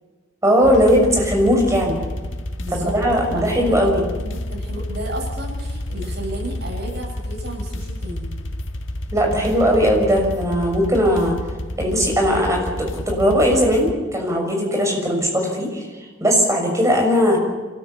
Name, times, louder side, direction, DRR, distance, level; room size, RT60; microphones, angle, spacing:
voice 1, 0.4-2.0 2.7-4.0 9.1-11.4 11.8-17.4, equal, 15° right, 1 dB, 6.6 m, -18 dB
sound 1, 0.6-13.9, left 1 dB, 80° left, 1.6 m, -30 dB
voice 2, 2.6-2.9 3.3-8.3, right 1 dB, 60° right, 1 dB, 7.0 m, -33 dB
27.5 x 13.0 x 8.6 m, 1.4 s
head